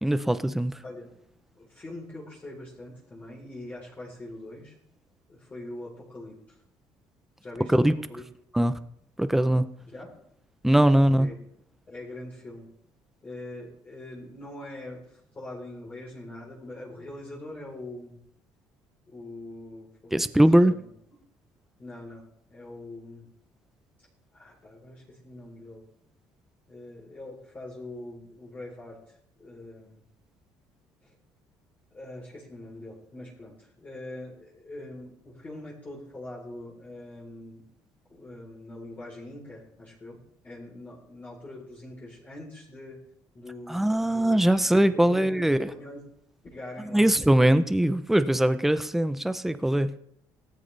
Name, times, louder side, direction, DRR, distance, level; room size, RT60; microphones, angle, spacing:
voice 1, 0.0-0.8 7.7-7.9 8.6-8.7 9.2-9.7 10.6-11.3 20.1-20.7 43.7-45.7 46.9-50.0, right 1 dB, 5° right, 11 dB, 0.7 m, -21 dB
voice 2, 1.5-4.7 5.3-6.6 7.4-8.2 9.9-10.3 11.1-11.3 11.9-12.7 13.2-18.2 19.1-20.9 21.8-23.3 24.3-25.8 26.7-30.0 31.0-31.1 31.9-37.7 38.1-40.2 40.4-43.0 43.3-46.1 46.5-47.1, left 1 dB, 25° left, -4 dB, 3.9 m, -43 dB
18.0 x 14.0 x 3.4 m, 0.71 s
cardioid pair, 145°, 8 cm